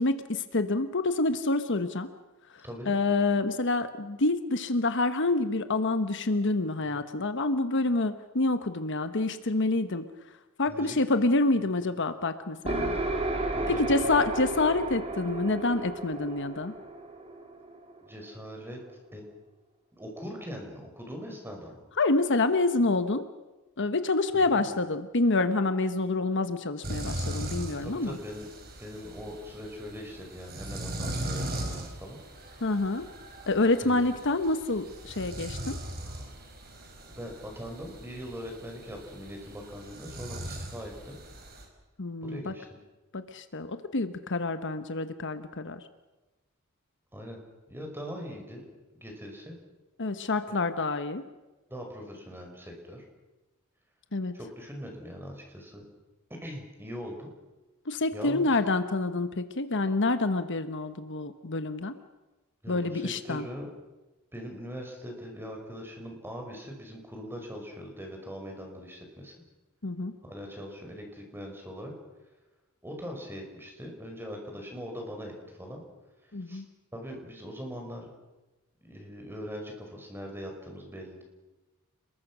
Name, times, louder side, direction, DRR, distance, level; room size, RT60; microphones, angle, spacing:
voice 1, 0.0-2.1 2.9-10.1 10.6-13.0 13.7-16.7 22.0-23.3 23.8-28.2 32.6-33.0 33.5-35.8 42.0-42.5 43.1-45.8 50.0-51.2 54.1-54.4 57.9-61.9 62.7-63.5 69.8-70.1 76.3-76.6, left 2 dB, 55° left, 10 dB, 1.2 m, -27 dB
sound 1, 12.6-18.3, right 2 dB, 30° right, 3.2 m, -33 dB
voice 2, 13.5-14.2 18.0-18.8 19.1-19.2 19.9-21.8 24.3-24.6 27.8-28.5 28.8-32.2 33.8-34.1 37.1-41.2 42.2-42.7 47.1-47.4 47.7-48.7 49.0-49.6 50.5-50.6 51.7-53.0 54.3-55.9 56.3-57.3 58.1-58.6 62.6-63.7 64.3-69.3 70.2-71.9 72.8-75.8 76.5-76.6 76.9-78.1 78.8-81.2, equal, 10° right, 2 dB, 5.5 m, -41 dB
sound 2, 26.8-41.7, right 1 dB, 45° right, 5.2 m, -39 dB
30.0 x 21.5 x 6.2 m, 1.1 s
head